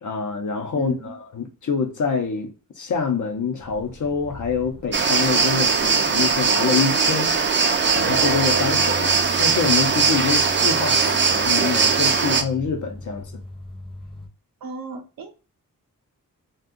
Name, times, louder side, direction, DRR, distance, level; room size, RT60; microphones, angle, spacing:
voice 1, 0.0-7.3 7.9-13.3, left 5 dB, 60° left, 0.7 m, -26 dB
voice 2, 0.7-1.2 14.6-15.3, right 4 dB, 85° right, 0.7 m, -35 dB
sound 1, 3.6-14.3, left 1 dB, 15° left, 0.7 m, -39 dB
sound 2, 4.9-12.4, right 5 dB, 35° right, 0.4 m, -20 dB
2.6 x 2.3 x 3.6 m
wide cardioid pair, 150°, 34 cm